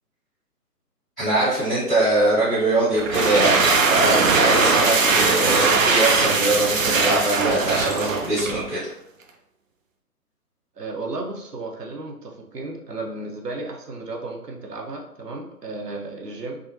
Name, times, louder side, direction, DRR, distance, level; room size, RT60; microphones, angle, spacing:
voice 1, 1.2-8.9, right 1 dB, ahead, -26 dB, 0.7 m, -22 dB
sound 1, 2.9-8.7, right 4 dB, 55° right, 0.5 m, -20 dB
voice 2, 10.8-16.6, right 2 dB, 80° right, 1 dB, 0.8 m, -34 dB
3.5 x 2.2 x 2.7 m, 0.77 s
figure-of-eight pair, 145°, 47 cm